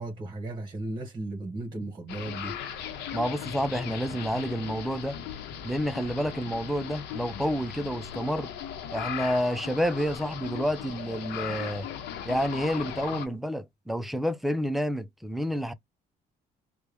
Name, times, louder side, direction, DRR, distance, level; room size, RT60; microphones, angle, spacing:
voice 1, 0.0-2.6, right 2 dB, 25° right, 1.3 m, -35 dB
sound 1, 2.1-13.3, left 9 dB, 80° left, 0.9 m, -38 dB
voice 2, 3.1-5.2 5.6-8.5 8.9-11.9 12.3-15.7, equal, ahead, 0.5 m, -29 dB
3.3 x 2.3 x 3.4 m
cardioid pair, 110°, 17 cm